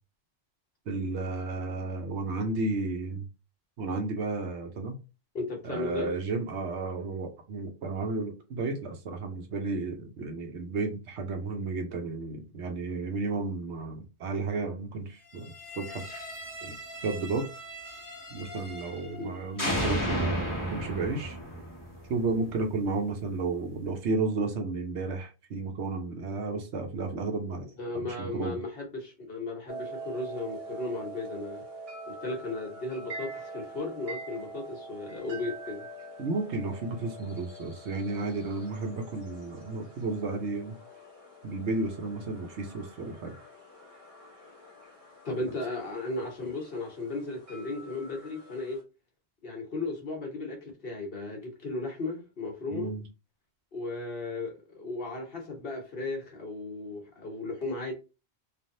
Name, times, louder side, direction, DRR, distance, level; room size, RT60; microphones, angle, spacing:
voice 1, 0.9-3.3 3.8-4.9 5.6-16.3 16.6-16.7 17.0-17.5 18.3-21.4 22.1-27.7 28.0-28.6 36.2-40.8 41.4-43.3 52.7-53.0, right 3 dB, 85° right, 1.1 m, -33 dB
voice 2, 5.3-6.1 19.1-19.4 27.8-31.6 32.1-35.9 45.2-48.8 49.4-52.9 53.7-57.9, left 2 dB, 55° left, 1.1 m, -35 dB
sound 1, 15.4-19.3 19.6-22.6, equal, 20° left, 0.8 m, -35 dB
sound 2, 29.7-48.8, right 2 dB, 35° right, 0.9 m, -45 dB
3.3 x 2.5 x 2.7 m
omnidirectional pair, 1.1 m